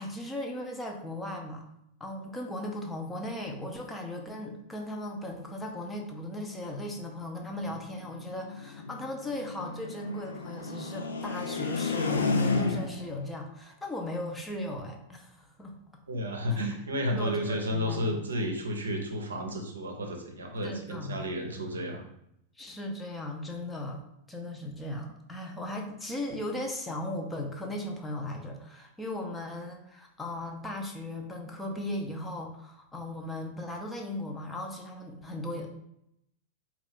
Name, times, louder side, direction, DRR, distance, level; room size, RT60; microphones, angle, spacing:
voice 1, 0.0-1.7 2.0-15.8 16.5-16.7 17.2-18.2 20.6-21.3 22.6-24.0 24.3-35.7, left 1 dB, 10° left, 2 dB, 0.6 m, -37 dB
sound 1, 7.6-13.1, left 4 dB, 75° left, 0.4 m, -32 dB
voice 2, 16.1-22.0, equal, 70° right, 2 dB, 0.6 m, -32 dB
4.4 x 2.4 x 3.5 m, 0.77 s
figure-of-eight pair, 90°, 0 cm